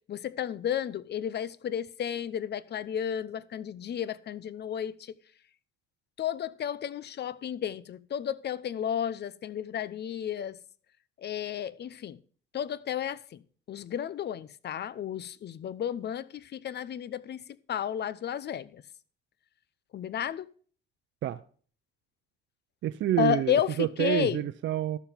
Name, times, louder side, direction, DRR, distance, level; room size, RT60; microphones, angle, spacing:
voice 1, 0.1-4.9 6.2-10.6 11.2-12.2 12.5-13.4 13.7-17.4 17.7-18.8 19.9-20.5 23.2-24.4, left 9 dB, 55° left, 0.8 m, -32 dB
voice 2, 22.8-25.0, right 12 dB, 70° right, 0.6 m, -28 dB
13.0 x 7.2 x 5.1 m
cardioid pair, 90°, 20 cm